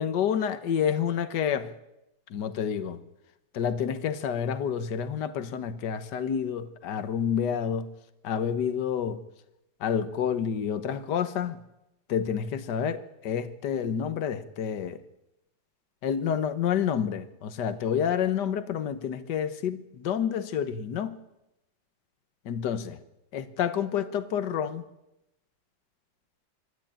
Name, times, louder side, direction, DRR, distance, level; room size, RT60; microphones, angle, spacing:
voice 1, 0.0-1.7 2.3-3.0 3.5-7.9 8.2-9.2 9.8-11.6 12.1-15.0 16.0-21.2 22.5-23.0 23.3-24.8, left 8 dB, 65° left, 11 dB, 1.7 m, -29 dB
25.0 x 13.0 x 9.0 m, 0.89 s
omnidirectional pair, 2.0 m